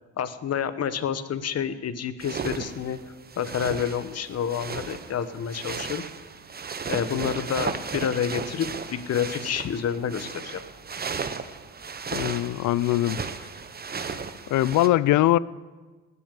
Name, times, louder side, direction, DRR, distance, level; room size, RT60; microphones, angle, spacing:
voice 1, 0.2-3.0 3.4-6.0 6.9-10.6, left 8 dB, 55° left, 1.1 m, -29 dB
sound 1, 2.2-14.9, right 5 dB, 30° right, 1.0 m, -35 dB
voice 2, 12.1-13.2 14.5-15.4, left 15 dB, 75° left, 0.5 m, -21 dB
18.5 x 7.1 x 8.3 m
cardioid pair, 90°, 30 cm